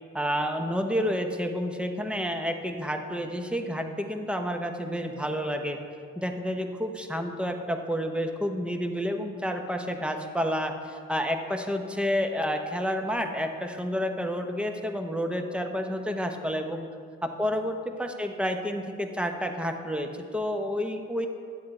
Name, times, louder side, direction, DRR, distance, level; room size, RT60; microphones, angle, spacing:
voice 1, 0.1-5.8 6.2-16.9 17.2-21.3, equal, 5° right, 5 dB, 0.9 m, -30 dB
10.5 x 7.5 x 4.3 m, 2.2 s
cardioid pair, 90°, 30 cm